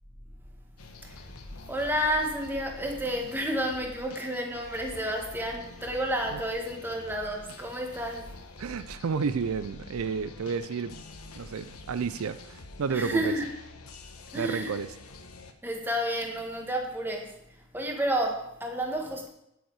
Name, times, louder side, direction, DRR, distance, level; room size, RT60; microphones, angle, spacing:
Power Donk II, 0.8-15.5, left 2 dB, 85° left, 1.1 m, -47 dB
voice 1, 0.9-8.5 12.9-13.5 14.3-14.7 15.6-19.3, equal, 10° right, 1.4 m, -31 dB
voice 2, 8.6-11.0 11.4-13.3 14.3-14.9, right 5 dB, 75° right, 0.4 m, -31 dB
9.3 x 8.7 x 4.7 m
head